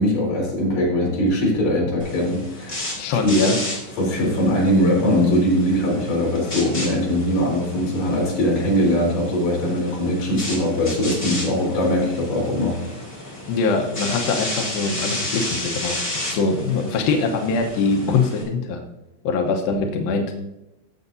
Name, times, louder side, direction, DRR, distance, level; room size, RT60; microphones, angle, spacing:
voice 1, 0.0-2.9 3.2-3.4 4.0-12.8, left 1 dB, 50° left, -4 dB, 4.9 m, -21 dB
sound 1, 2.0-18.4, left 1 dB, 15° left, 2.0 m, -32 dB
voice 2, 3.0-3.6 13.5-16.0 16.3-18.8 19.2-20.3, left 4 dB, 80° left, 3 dB, 2.1 m, -22 dB
17.5 x 7.0 x 2.7 m, 0.89 s
omnidirectional pair, 5.4 m